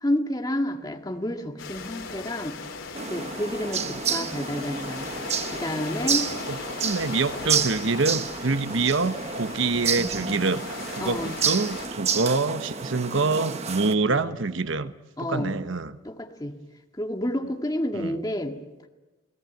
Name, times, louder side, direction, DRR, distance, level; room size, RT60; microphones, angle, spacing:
voice 1, 0.0-2.6 3.1-5.1 5.5-6.3 11.0-11.3 15.2-15.6 16.0-16.6 17.0-18.6, left 1 dB, 20° left, 3 dB, 1.9 m, -29 dB
sound 1, 1.6-11.9, left 4 dB, 75° left, 3.8 m, -38 dB
sound 2, 2.9-14.0, right 6 dB, 30° right, 1.1 m, -30 dB
voice 2, 6.3-14.9 15.2-16.0 17.9-18.2, right 3 dB, 70° right, 11 dB, 1.0 m, -26 dB
29.0 x 18.5 x 9.2 m, 1.2 s
head